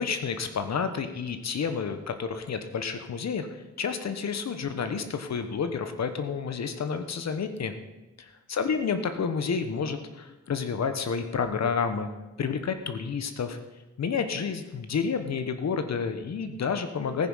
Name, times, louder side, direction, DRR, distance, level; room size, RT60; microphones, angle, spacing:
voice 1, 0.0-3.5 3.8-7.7 8.2-12.1 12.4-13.6 14.0-17.3, left 6 dB, 60° left, 9 dB, 1.1 m, -30 dB
15.5 x 9.8 x 5.6 m, 1.0 s
wide cardioid pair, 170°, 30 cm